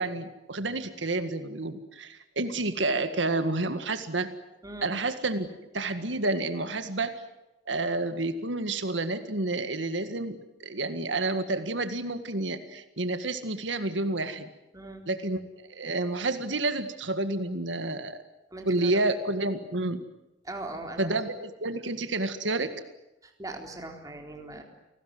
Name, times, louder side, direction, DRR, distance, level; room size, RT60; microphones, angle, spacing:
voice 1, 0.0-4.3 4.8-7.2 7.7-14.5 15.1-15.4 15.7-18.2 18.7-20.0 21.0-22.7, right 2 dB, 75° right, 9 dB, 1.9 m, -29 dB
voice 2, 4.6-4.9 14.7-15.0 18.5-18.9 20.4-21.1 23.2-24.6, right 2 dB, 20° right, 2 dB, 4.0 m, -40 dB
30.0 x 19.5 x 9.6 m, 0.93 s
head